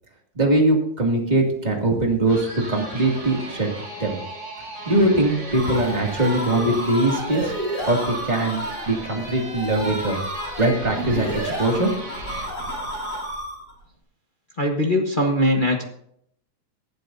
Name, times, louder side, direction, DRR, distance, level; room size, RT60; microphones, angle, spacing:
voice 1, 0.3-4.2 4.9-7.5 7.9-11.9, right 2 dB, 15° right, 0 dB, 2.2 m, -22 dB
sound 1, 2.3-12.5, right 1 dB, 35° right, 4.1 m, -37 dB
sound 2, 5.2-13.7, equal, 30° left, 7.3 m, -31 dB
voice 2, 14.6-15.8, left 1 dB, 70° left, 0 dB, 0.4 m, -21 dB
19.5 x 12.0 x 2.8 m, 0.70 s
omnidirectional pair, 3.5 m